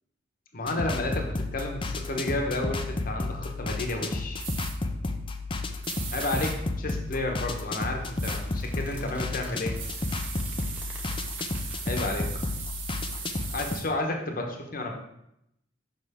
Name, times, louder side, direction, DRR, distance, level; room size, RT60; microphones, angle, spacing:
voice 1, 0.5-4.5 6.1-9.8 11.8-12.3 13.5-14.9, left 2 dB, 50° left, 2 dB, 1.1 m, -31 dB
sound 1, 0.7-13.8, left 2 dB, 25° left, 0.5 m, -32 dB
sound 2, 4.4-4.7 5.8-6.5 8.2-8.4 9.7-13.8, right 6 dB, 90° right, 1.6 m, -38 dB
sound 3, 6.8-12.3, right 1 dB, 5° right, 0.9 m, -51 dB
6.8 x 6.0 x 3.6 m, 0.80 s
head